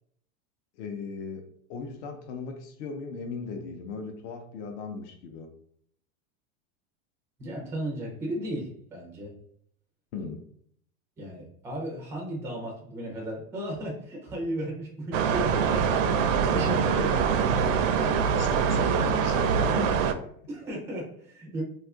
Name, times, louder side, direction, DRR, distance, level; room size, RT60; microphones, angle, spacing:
voice 1, 0.7-1.4 1.7-5.5 10.1-10.5 15.9-16.0 18.0-20.3, left 5 dB, 60° left, 4 dB, 0.6 m, -38 dB
voice 2, 7.4-9.3 11.2-17.3 20.5-21.6, equal, 5° right, -2 dB, 0.3 m, -35 dB
sound 1, 15.1-20.1, right 6 dB, 70° right, 0.5 m, -24 dB
2.6 x 2.4 x 3.5 m, 0.65 s
supercardioid pair, 150°, 40 cm